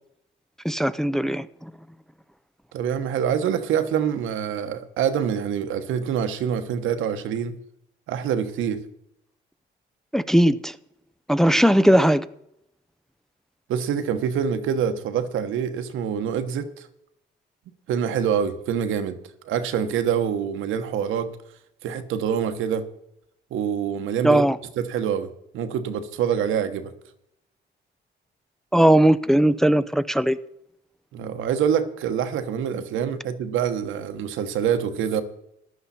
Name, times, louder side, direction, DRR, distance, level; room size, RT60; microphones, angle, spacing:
voice 1, 0.6-1.7 10.1-10.8 11.3-12.3 24.2-24.6 28.7-30.4, right 1 dB, ahead, 0.5 m, -18 dB
voice 2, 2.7-7.6 8.1-8.8 13.7-16.9 17.9-19.2 19.4-21.3 21.8-22.9 23.5-24.4 24.8-26.9 31.1-35.2, right 8 dB, 85° right, 1.2 m, -25 dB
14.5 x 11.0 x 4.2 m
cardioid pair, 90°, 20 cm